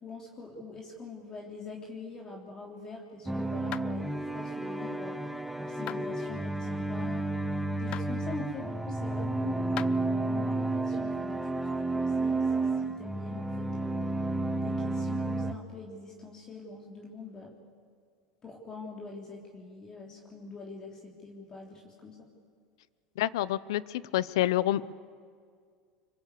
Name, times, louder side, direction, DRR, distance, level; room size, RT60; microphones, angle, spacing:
voice 1, 0.0-5.2 5.6-7.3 7.7-14.0 14.6-17.5 18.4-22.3, left 3 dB, 25° left, -1 dB, 3.4 m, -44 dB
sound 1, 3.3-15.5, right 2 dB, 5° right, 1.0 m, -31 dB
sound 2, 3.7-3.9 5.9-6.1 7.9-8.1 9.8-9.9, left 13 dB, 45° left, 0.6 m, -37 dB
voice 2, 23.2-24.9, left 14 dB, 85° left, 18 dB, 0.7 m, -28 dB
25.5 x 23.5 x 8.4 m, 2.1 s
supercardioid pair, 125°, 2 cm